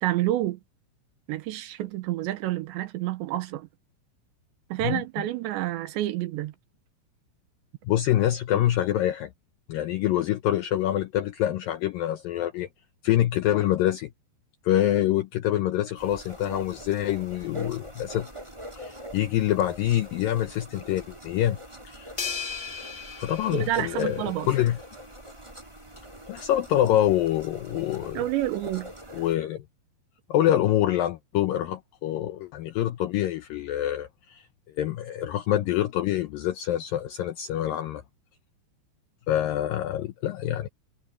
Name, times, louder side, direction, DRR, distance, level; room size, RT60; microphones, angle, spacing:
voice 1, 0.0-0.6 1.3-3.7 4.7-6.5 23.5-24.5 28.2-28.9, right 14 dB, 85° right, 3.4 m, -29 dB
voice 2, 7.9-9.3 9.7-12.7 13.0-14.1 14.6-18.3 18.8-21.6 21.9-22.1 23.2-24.8 26.3-28.2 29.1-29.6 30.3-34.5 34.8-38.0 39.3-40.7, left 12 dB, 80° left, 2.0 m, -26 dB
sound 1, 16.0-29.4, equal, 10° right, 2.8 m, -44 dB
prac - ride bell loud, 22.2-24.7, left 5 dB, 30° left, 1.1 m, -36 dB
omnidirectional pair, 5.1 m